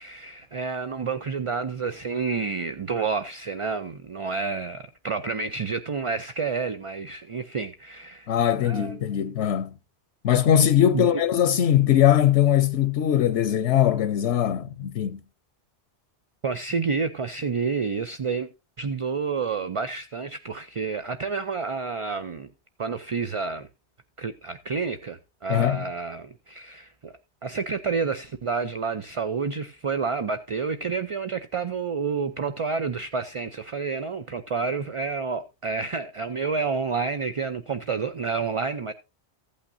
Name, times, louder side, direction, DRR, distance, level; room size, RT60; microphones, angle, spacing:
voice 1, 0.0-8.3 8.6-9.1 10.9-11.1 16.4-18.5 18.8-22.5 22.8-23.7 24.2-27.1 27.4-38.9, right 5 dB, 40° right, 0.5 m, -29 dB
voice 2, 8.3-9.8 10.2-15.2 25.5-25.8, left 10 dB, 90° left, 1.0 m, -21 dB
15.5 x 8.6 x 2.6 m
omnidirectional pair, 1.2 m